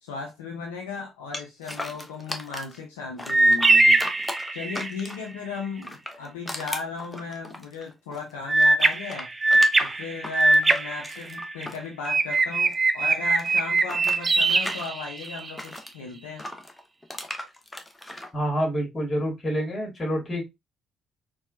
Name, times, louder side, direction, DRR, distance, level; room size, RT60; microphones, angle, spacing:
voice 1, 0.0-4.0 4.5-9.3 9.8-16.5, left 4 dB, 75° left, 0.6 m, -36 dB
sound 1, 1.3-2.8 3.2-5.3 5.8-8.3 8.6-12.7 13.0-15.9 16.4-18.3, left 1 dB, 15° left, 0.8 m, -36 dB
sound 2, 3.3-5.0 8.5-11.7 12.1-15.5, right 2 dB, 30° right, 0.4 m, -21 dB
voice 2, 18.3-20.4, equal, 30° left, 1.8 m, -27 dB
4.2 x 2.3 x 2.5 m
figure-of-eight pair, 45°, 0 cm